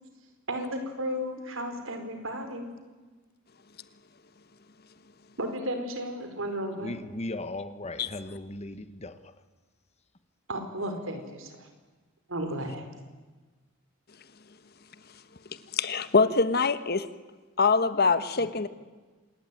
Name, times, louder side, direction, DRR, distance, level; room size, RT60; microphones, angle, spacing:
voice 1, 0.5-2.7 5.4-6.9 10.5-11.7 12.3-12.9, equal, 70° right, 4.7 m, -34 dB
voice 2, 6.8-9.2, left 2 dB, 30° left, 1.3 m, -37 dB
voice 3, 15.7-17.1 17.6-18.7, left 4 dB, 50° left, 1.3 m, -24 dB
26.5 x 20.5 x 9.3 m
head